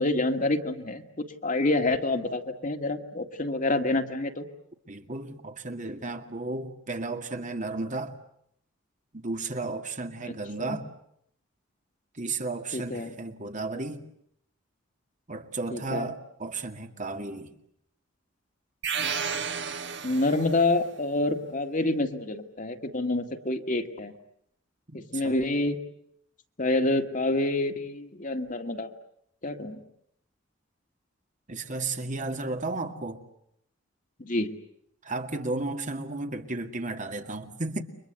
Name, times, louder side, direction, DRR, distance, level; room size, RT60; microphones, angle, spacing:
voice 1, 0.0-4.5 10.3-10.8 12.7-13.1 15.7-16.1 20.0-24.1 24.9-25.8 26.6-28.9 29.4-29.8 34.2-34.5, left 2 dB, 40° left, 2.1 m, -27 dB
voice 2, 4.9-8.1 9.1-10.9 12.1-14.0 15.3-17.5 24.9-25.4 31.5-33.2 35.0-37.8, right 3 dB, 40° right, 2.2 m, -33 dB
sound 1, 18.8-20.7, right 6 dB, 60° right, 1.6 m, -32 dB
30.0 x 24.0 x 8.1 m
head